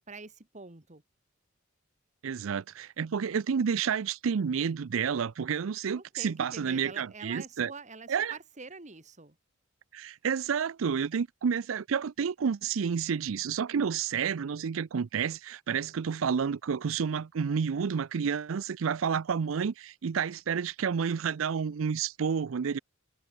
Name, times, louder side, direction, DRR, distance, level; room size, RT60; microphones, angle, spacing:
voice 1, 0.1-1.0 5.9-9.4, right 3 dB, 35° right, 2.1 m, -46 dB
voice 2, 2.2-7.7 8.1-8.4 9.9-22.8, right 6 dB, 80° right, 0.5 m, -30 dB
head